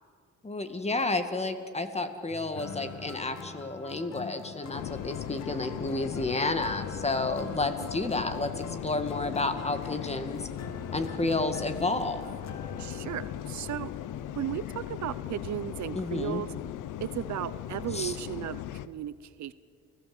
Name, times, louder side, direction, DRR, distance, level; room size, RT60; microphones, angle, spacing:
voice 1, 0.4-10.5 10.9-12.2 16.0-16.4 17.9-18.1, left 2 dB, 20° left, 8 dB, 2.2 m, -31 dB
sound 1, 2.3-14.6, left 5 dB, 60° left, 2.1 m, -44 dB
sound 2, 4.7-18.9, left 12 dB, 85° left, 0.9 m, -38 dB
voice 2, 7.5-7.9 12.8-13.9 14.4-16.5 17.0-19.5, right 12 dB, 65° right, 16 dB, 0.8 m, -35 dB
30.0 x 16.0 x 8.0 m, 2.2 s
cardioid pair, 90°, 30 cm